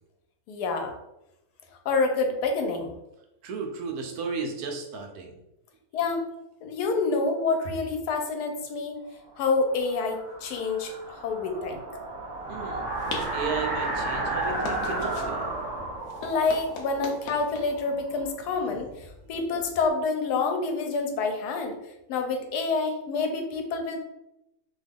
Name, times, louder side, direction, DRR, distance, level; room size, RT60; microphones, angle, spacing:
voice 1, 0.5-1.0 1.8-2.9 5.9-6.2 6.6-9.0 9.4-11.8 16.2-21.8 22.1-24.0, left 4 dB, 85° left, 4 dB, 1.1 m, -27 dB
voice 2, 3.4-5.3 12.5-12.8 13.3-15.4, right 4 dB, 75° right, 2 dB, 1.1 m, -34 dB
sound 1, 9.5-18.2, right 2 dB, 20° right, 1.1 m, -33 dB
sound 2, 12.3-19.9, left 3 dB, 65° left, 0.7 m, -42 dB
2.9 x 2.3 x 3.4 m, 0.88 s
omnidirectional pair, 1.7 m